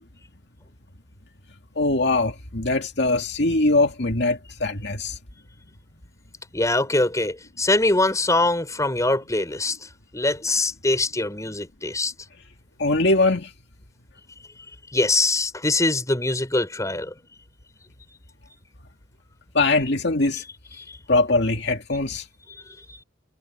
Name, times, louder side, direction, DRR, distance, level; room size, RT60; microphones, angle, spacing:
voice 1, 1.8-5.2 12.8-13.5 19.5-20.4 21.1-22.2, left 2 dB, 65° left, 2.4 m, -22 dB
voice 2, 6.5-9.8 10.1-12.1 14.9-17.1 20.8-21.0, left 2 dB, 15° left, 5.1 m, -23 dB
head